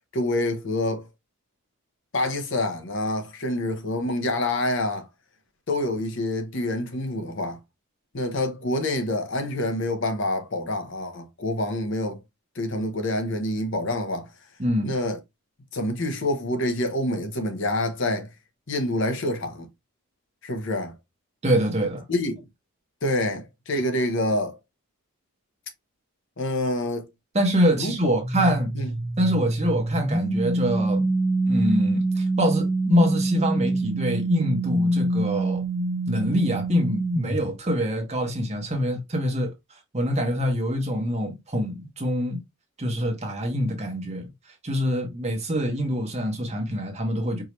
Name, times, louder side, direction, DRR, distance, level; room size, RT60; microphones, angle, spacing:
voice 1, 0.1-1.1 2.1-5.1 5.7-7.6 8.1-12.2 12.5-14.3 14.8-15.2 15.7-18.3 18.7-19.7 20.4-20.9 22.1-22.4 23.0-24.6 26.4-27.1 27.8-28.1 28.8-28.9, left 1 dB, 55° left, 0.9 m, -27 dB
voice 2, 14.6-15.0 21.4-22.0 27.3-28.7 29.2-31.1 31.5-35.6 36.1-39.5 39.9-42.4 42.8-44.3 44.6-47.4, equal, 30° right, 1.1 m, -25 dB
sound 1, 28.2-37.5, right 2 dB, 15° right, 0.5 m, -25 dB
4.8 x 2.7 x 3.1 m
head